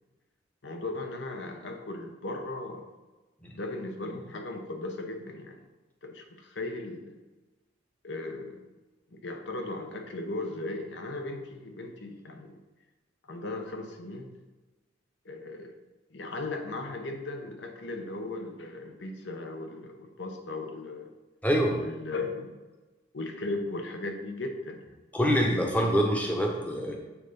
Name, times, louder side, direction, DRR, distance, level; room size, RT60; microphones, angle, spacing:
voice 1, 0.6-2.9 3.5-5.6 6.0-7.1 8.0-8.6 9.1-12.6 13.3-14.3 15.2-15.8 16.1-21.1 21.8-22.6 23.1-24.9, left 2 dB, 65° left, 4 dB, 0.9 m, -37 dB
voice 2, 21.4-21.8 25.1-27.0, equal, 10° left, 1 dB, 0.9 m, -25 dB
7.2 x 3.8 x 5.4 m, 1.2 s
head